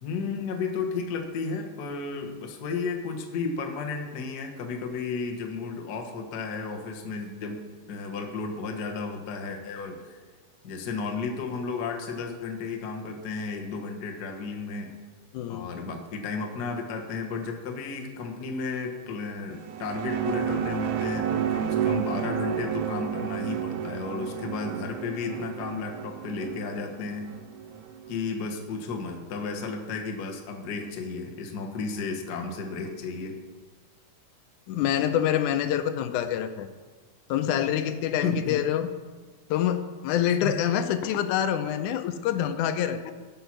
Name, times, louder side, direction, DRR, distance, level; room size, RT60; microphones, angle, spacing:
voice 1, 0.0-7.6 7.9-10.2 10.6-14.9 15.5-27.3 28.1-33.4 38.2-38.6 40.4-40.6, left 4 dB, 60° left, 2 dB, 1.0 m, -33 dB
voice 2, 15.3-15.8 34.7-36.7 37.3-38.9 39.5-43.1, left 10 dB, 85° left, 9 dB, 2.1 m, -26 dB
sound 1, 19.5-28.2, right 10 dB, 85° right, 2.1 m, -31 dB
12.5 x 5.6 x 5.9 m, 1.4 s
omnidirectional pair, 3.5 m